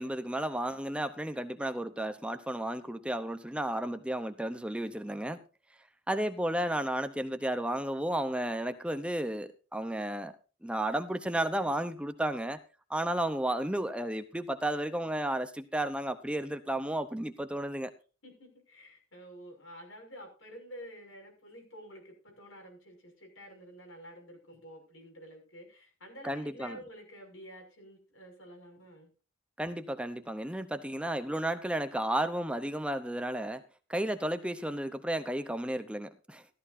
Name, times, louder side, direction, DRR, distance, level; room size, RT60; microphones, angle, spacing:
voice 1, 0.0-5.4 6.1-10.3 10.6-12.6 12.9-17.9 26.2-26.8 29.6-33.6 33.9-36.4, right 1 dB, 5° right, 0.8 m, -33 dB
voice 2, 18.2-29.1, equal, 90° left, 6.4 m, -50 dB
15.0 x 13.5 x 2.7 m
head